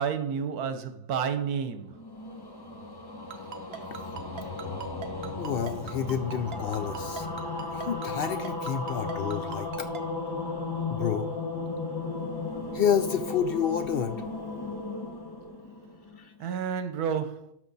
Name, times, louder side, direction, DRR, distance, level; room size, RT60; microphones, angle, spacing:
voice 1, 0.0-2.0 16.4-17.5, right 7 dB, 80° right, 1.3 m, -30 dB
sound 1, 1.9-16.3, left 3 dB, 20° left, 0.9 m, -35 dB
Ringtone, 3.3-10.0, right 8 dB, 45° right, 1.0 m, -39 dB
voice 2, 5.4-7.3 7.7-9.9 10.9-11.3 12.7-14.2 16.2-16.3, left 8 dB, 85° left, 0.5 m, -29 dB
12.5 x 5.8 x 4.0 m
omnidirectional pair, 1.6 m